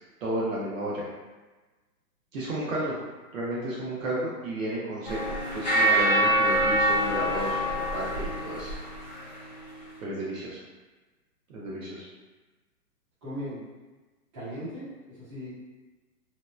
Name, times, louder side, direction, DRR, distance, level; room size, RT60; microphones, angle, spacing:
voice 1, 0.2-1.0 2.3-2.9 3.3-8.7 10.0-10.6 11.5-12.1, right 1 dB, 55° right, -6 dB, 0.7 m, -32 dB
sound 1, 5.1-9.3, right 1 dB, 30° left, 0.4 m, -25 dB
voice 2, 13.2-13.6 14.3-15.5, equal, 20° right, -12 dB, 0.8 m, -37 dB
2.9 x 2.0 x 2.2 m, 1.2 s
hypercardioid pair, 160°, 47 cm